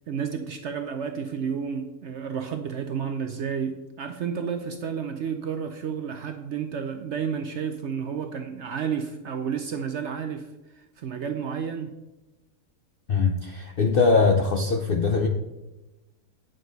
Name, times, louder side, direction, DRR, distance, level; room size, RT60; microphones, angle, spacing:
voice 1, 0.1-12.0, right 7 dB, 65° right, 0.7 m, -31 dB
voice 2, 13.1-15.3, left 4 dB, 60° left, 0.5 m, -21 dB
9.1 x 6.5 x 4.0 m
omnidirectional pair, 1.7 m